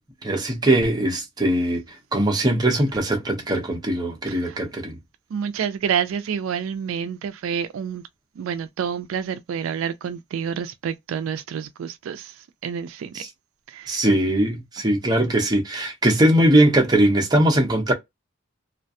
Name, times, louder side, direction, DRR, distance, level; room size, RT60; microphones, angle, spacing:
voice 1, 0.2-1.8 2.1-4.9 13.1-13.3 13.9-17.9, right 1 dB, 20° right, 0.7 m, -20 dB
voice 2, 4.3-4.6 5.3-8.0 8.4-12.3 12.6-13.2 13.7-14.0, right 7 dB, 80° right, 0.3 m, -28 dB
2.4 x 2.1 x 2.6 m
head